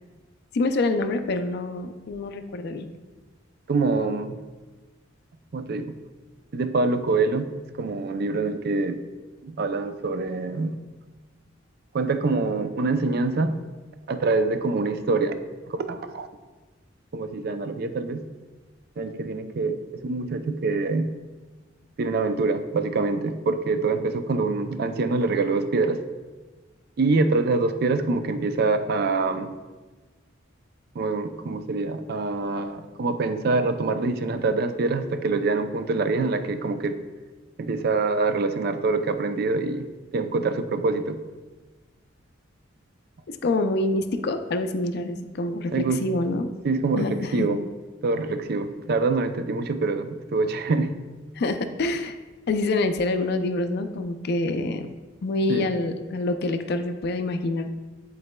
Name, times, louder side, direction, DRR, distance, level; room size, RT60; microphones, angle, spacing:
voice 1, 0.5-2.9 43.3-46.5 47.0-47.5 51.4-52.2 52.5-54.9 55.2-57.7, left 2 dB, 55° left, 8 dB, 0.4 m, -26 dB
voice 2, 3.7-4.3 5.5-5.9 6.5-7.5 7.8-9.0 9.4-10.7 11.9-13.6 14.1-15.4 15.7-16.3 17.1-18.2 19.0-19.8 20.0-21.1 22.0-26.0 27.0-29.5 30.9-37.0 37.6-39.9 40.1-41.2 45.7-46.0 46.6-47.6 48.0-50.9 55.5-55.7, right 3 dB, 50° right, 9 dB, 0.4 m, -25 dB
10.5 x 3.9 x 2.2 m, 1.3 s
head